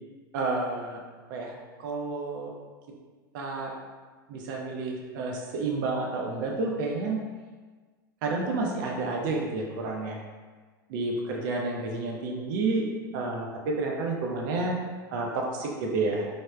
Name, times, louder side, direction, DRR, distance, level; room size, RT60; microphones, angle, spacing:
voice 1, 0.3-1.0 1.3-2.5 3.3-3.7 4.3-7.2 8.2-10.2 10.9-12.9 13.1-14.8 15.1-16.3, right 3 dB, 60° right, 0 dB, 0.6 m, -30 dB
4.9 x 2.1 x 2.2 m, 1.4 s
hypercardioid pair, 95°, 12 cm